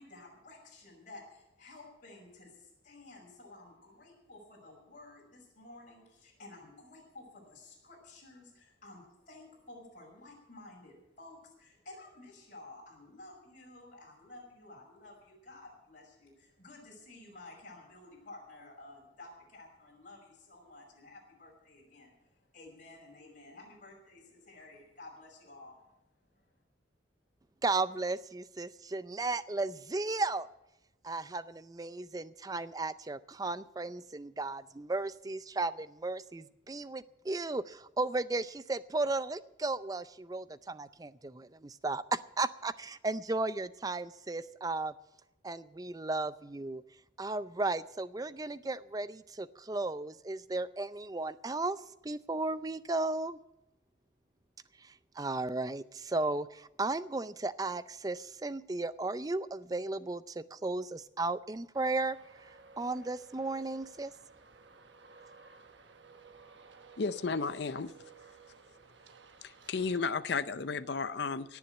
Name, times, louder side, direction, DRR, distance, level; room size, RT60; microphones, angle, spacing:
voice 1, 0.0-25.8 26.2-26.5, left 2 dB, 40° left, -4 dB, 5.7 m, -53 dB
voice 2, 27.6-30.5 31.0-44.9 45.4-46.8 47.2-51.8 52.0-53.4 54.8-62.2 62.8-64.1, right 3 dB, 20° right, 15 dB, 0.4 m, -35 dB
Traffic noise roadway noise, 61.7-70.0, right 4 dB, 70° right, 1.2 m, -56 dB
voice 3, 67.0-67.9 69.4-71.6, left 4 dB, 60° left, 13 dB, 0.6 m, -33 dB
18.5 x 7.1 x 9.0 m, 0.92 s
head